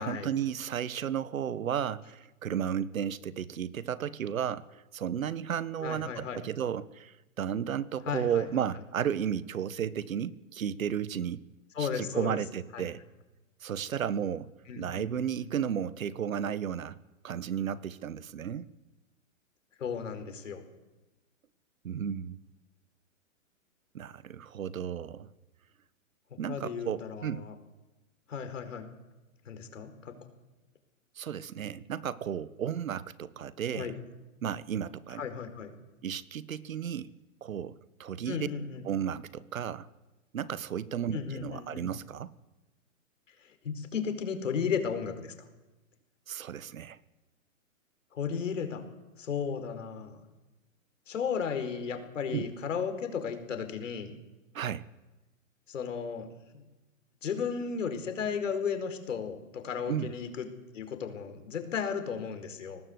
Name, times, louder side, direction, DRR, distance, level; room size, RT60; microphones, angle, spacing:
voice 1, 0.0-11.4 11.8-13.0 13.6-17.0 17.2-18.7 21.8-22.4 23.9-25.3 26.4-27.5 31.2-33.9 34.4-35.2 36.0-37.1 37.4-38.5 38.8-39.9 40.3-42.3 46.3-47.0 52.3-52.4 54.5-54.9 59.9-60.1, right 9 dB, 80° right, 17 dB, 1.3 m, -33 dB
voice 2, 5.8-6.4 8.1-8.5 11.7-12.4 12.7-12.9 14.7-15.5 19.8-20.6 26.5-27.5 28.3-28.9 29.4-30.1 33.7-33.9 35.2-35.7 38.2-38.8 41.1-41.9 43.4-45.3 48.1-48.8 49.2-50.2 51.1-54.1 55.7-56.3 56.5-56.6 57.2-60.5 60.7-62.8, left 6 dB, 65° left, 8 dB, 4.7 m, -34 dB
24.0 x 19.0 x 8.0 m, 1.1 s
hypercardioid pair, 180°, 41 cm